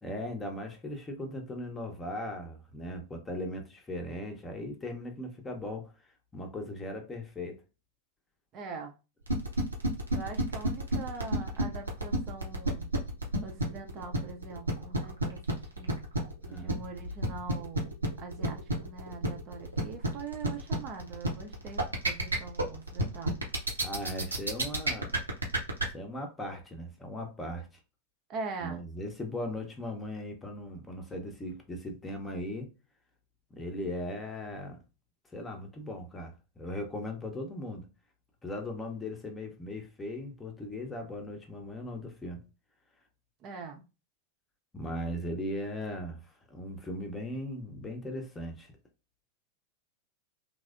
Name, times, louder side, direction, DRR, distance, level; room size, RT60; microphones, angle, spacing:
voice 1, 0.0-5.9 6.3-7.6 16.4-16.8 23.8-25.1 25.9-27.8 28.6-32.7 33.5-34.8 35.3-37.9 38.4-42.4 44.7-48.7, left 1 dB, 15° left, 0.7 m, -38 dB
voice 2, 8.5-8.9 10.1-12.9 13.4-16.0 16.5-23.4 28.3-28.8 43.4-43.8, right 4 dB, 35° right, 0.5 m, -43 dB
sound 1, 9.3-25.8, right 1 dB, 80° right, 0.6 m, -29 dB
3.1 x 2.0 x 2.4 m
figure-of-eight pair, 90°, 0 cm